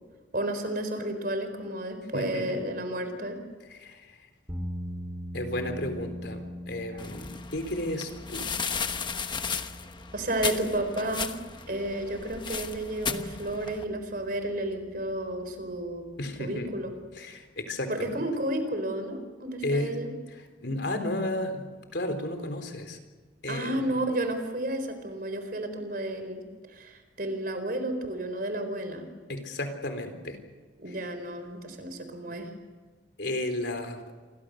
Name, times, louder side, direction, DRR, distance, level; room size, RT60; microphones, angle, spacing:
voice 1, 0.3-3.4 6.9-7.0 10.1-11.3 11.7-16.1 16.4-16.9 17.9-20.1 23.5-26.4 26.7-29.1 30.8-32.5, right 1 dB, 50° right, 7 dB, 4.5 m, -32 dB
voice 2, 2.1-2.6 3.7-4.1 5.3-8.4 16.2-16.7 17.2-18.1 19.6-20.0 20.6-21.7 21.9-23.0 23.4-24.0 29.3-30.4 33.2-34.0, left 1 dB, 65° left, 6 dB, 3.9 m, -33 dB
sound 1, 4.5-17.0, equal, 15° right, 3.2 m, -43 dB
sound 2, 7.0-13.8, left 5 dB, 25° left, 1.1 m, -35 dB
28.5 x 24.0 x 6.6 m, 1.4 s
head